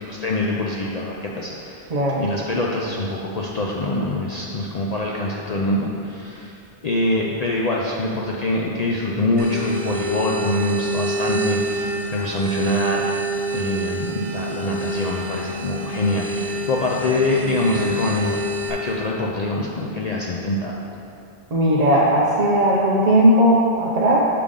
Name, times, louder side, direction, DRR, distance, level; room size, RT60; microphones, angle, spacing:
voice 1, 0.0-1.8 2.1-6.5 6.8-13.1 13.5-18.4 18.7-20.8, left 2 dB, 55° left, -3 dB, 0.4 m, -24 dB
voice 2, 1.9-2.2 21.5-24.2, right 1 dB, 45° right, -5 dB, 0.6 m, -17 dB
sound 1, 9.4-18.7, right 2 dB, 75° right, 1.0 m, -27 dB
6.7 x 5.1 x 3.6 m, 2.8 s
omnidirectional pair, 1.2 m